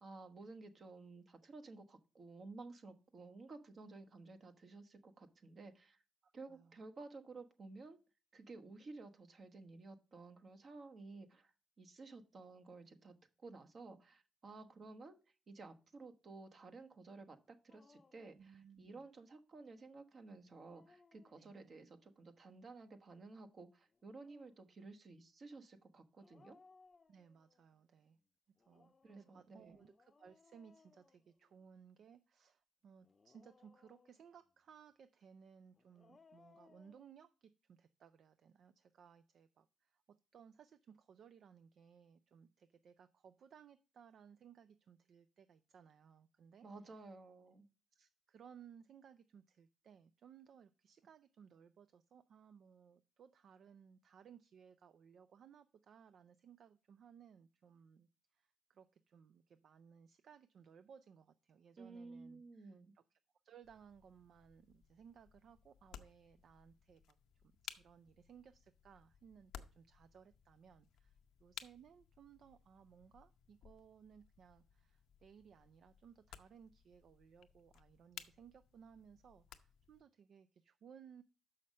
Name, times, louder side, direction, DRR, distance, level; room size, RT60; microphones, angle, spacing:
voice 1, 0.0-6.0 6.3-8.0 8.3-11.5 11.8-13.2 13.4-15.2 15.5-17.4 17.6-26.6 29.0-29.7 46.6-47.7 61.8-62.9, right 3 dB, 45° right, 7 dB, 1.1 m, -54 dB
voice 2, 6.2-6.8 18.3-19.0 21.4-21.7 27.1-28.2 28.6-47.0 47.9-63.2 63.4-67.2 67.4-81.2, right 7 dB, 60° right, 12 dB, 0.4 m, -62 dB
Dog, 17.7-18.3 20.4-21.8 23.9-24.7 26.2-27.6 28.6-31.8 33.0-34.4 35.7-37.1, left 4 dB, 30° left, 0.4 m, -68 dB
sound 1, 63.6-80.0, left 9 dB, 80° left, 0.7 m, -59 dB
6.3 x 5.7 x 5.3 m, 0.34 s
cardioid pair, 90°, 0 cm